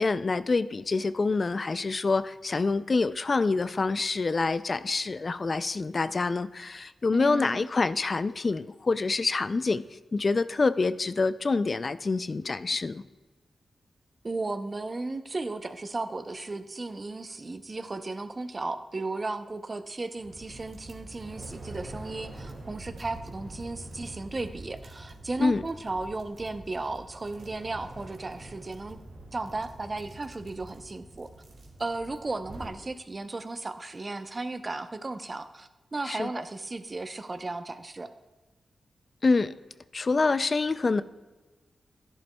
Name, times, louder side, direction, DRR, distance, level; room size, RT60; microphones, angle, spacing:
voice 1, 0.0-9.8 10.1-13.0 25.4-25.6 36.1-36.3 39.2-39.6 39.9-41.0, left 3 dB, 50° left, 14 dB, 0.3 m, -26 dB
voice 2, 7.1-7.7 14.2-29.0 29.3-31.3 31.8-38.1, right 3 dB, 40° right, 9 dB, 0.6 m, -35 dB
sound 1, 20.2-32.7, right 2 dB, 80° right, 2.0 m, -45 dB
11.5 x 10.5 x 2.3 m, 1.2 s
cardioid pair, 50°, 0 cm